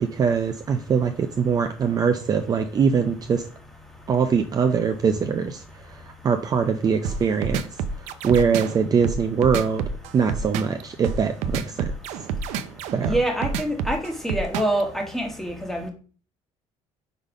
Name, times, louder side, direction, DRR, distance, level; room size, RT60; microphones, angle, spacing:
voice 1, 0.0-3.5 4.1-5.6 5.9-7.6 8.2-9.8 10.1-11.9 12.9-13.2, right 6 dB, 35° right, 6 dB, 0.5 m, -22 dB
sound 1, 7.0-14.8, right 6 dB, 90° right, 0.6 m, -28 dB
voice 2, 13.0-15.9, right 1 dB, ahead, 2 dB, 1.4 m, -26 dB
5.3 x 4.0 x 5.0 m, 0.40 s
cardioid pair, 125°, 12 cm